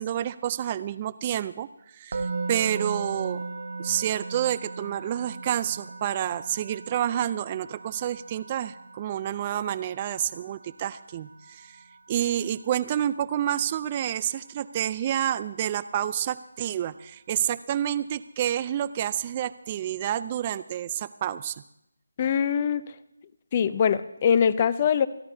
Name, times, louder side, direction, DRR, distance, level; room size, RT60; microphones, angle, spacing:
voice 1, 0.0-1.7 1.9-3.4 3.8-11.8 12.1-21.6, right 11 dB, 25° right, 15 dB, 0.4 m, -29 dB
Musical instrument, 2.1-13.2, right 3 dB, 55° right, 0.9 m, -38 dB
voice 2, 22.2-22.8 23.5-25.1, left 7 dB, 30° left, 15 dB, 0.6 m, -22 dB
28.0 x 11.5 x 2.8 m, 0.80 s
figure-of-eight pair, 160°, 0 cm